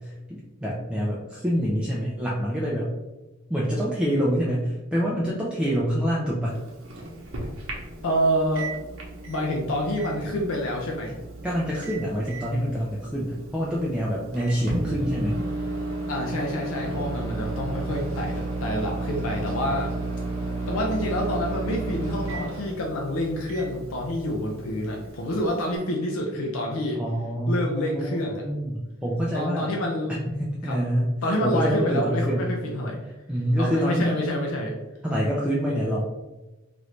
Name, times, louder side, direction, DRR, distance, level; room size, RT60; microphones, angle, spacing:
voice 1, 0.0-2.9 3.5-6.6 11.4-15.4 27.0-29.7 30.4-31.1 31.4-32.5 33.3-34.3 35.0-36.0, equal, 5° right, -6 dB, 0.4 m, -26 dB
Microwave oven, 6.5-25.8, right 2 dB, 85° right, 0.8 m, -33 dB
voice 2, 8.0-8.7 9.3-11.2 16.1-19.9 20.7-27.0 27.5-28.4 29.3-30.2 30.6-30.8 31.2-33.0 33.6-34.7, equal, 85° left, 0 dB, 0.5 m, -27 dB
3.1 x 2.5 x 3.1 m, 1.1 s
head